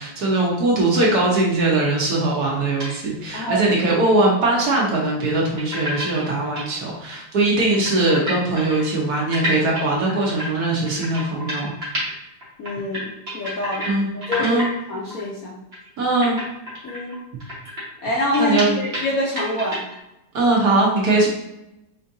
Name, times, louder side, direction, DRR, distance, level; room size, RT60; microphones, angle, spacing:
voice 1, 0.0-11.7 13.9-14.1 14.4-14.7 16.0-16.4 18.4-18.8 20.3-21.3, right 2 dB, 60° right, -3 dB, 1.3 m, -20 dB
sound 1, 2.8-3.0 3.4-3.5 4.7-4.8 5.6-6.6 7.1-7.2 7.4-7.5 7.7-12.1 12.4-13.9 14.2-14.8 15.1-15.2 15.7-15.9 16.2-19.1 19.4-20.0, equal, 35° right, 1.7 m, -30 dB
voice 2, 3.3-3.8 12.6-14.6 14.9-15.6 16.8-17.2 18.0-19.8, left 1 dB, 65° left, -4 dB, 0.9 m, -26 dB
4.6 x 4.0 x 2.7 m, 0.90 s
omnidirectional pair, 2.1 m